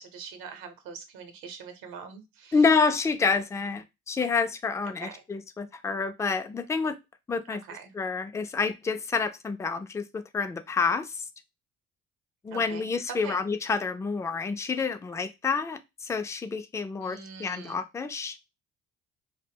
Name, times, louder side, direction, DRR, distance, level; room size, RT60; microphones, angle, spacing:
voice 1, 0.0-2.7 4.8-5.2 7.5-7.9 12.5-13.4 17.0-17.8, right 6 dB, 70° right, 0.8 m, -43 dB
voice 2, 2.5-7.0 7.3-7.6 8.0-11.2 12.4-18.4, left 4 dB, 10° left, 0.3 m, -28 dB
2.1 x 2.1 x 3.4 m
hypercardioid pair, 55°, 35 cm